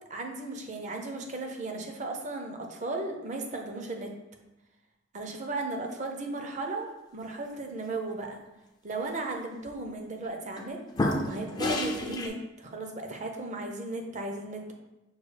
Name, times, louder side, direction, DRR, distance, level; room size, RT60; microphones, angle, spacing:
voice 1, 0.1-4.1 5.1-8.4 8.8-14.7, right 2 dB, 40° right, 3 dB, 0.5 m, -36 dB
sound 1, 9.4-9.7 10.2-10.7 10.9-12.3, left 1 dB, 20° left, 0.4 m, -30 dB
6.1 x 2.3 x 3.2 m, 0.96 s
head